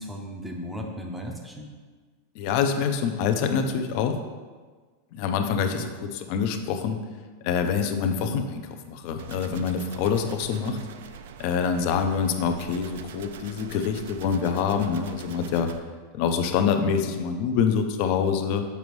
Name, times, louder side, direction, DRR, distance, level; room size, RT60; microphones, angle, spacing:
voice 1, 0.0-1.7 5.5-5.9, equal, 5° right, 1 dB, 0.6 m, -36 dB
voice 2, 2.3-4.2 5.1-7.0 7.4-10.8 11.4-15.7 16.1-18.6, left 6 dB, 45° left, 6 dB, 0.5 m, -26 dB
sound 1, 9.2-15.8, right 7 dB, 75° right, 0.4 m, -43 dB
6.8 x 5.0 x 3.1 m, 1.4 s
supercardioid pair, 165°, 0 cm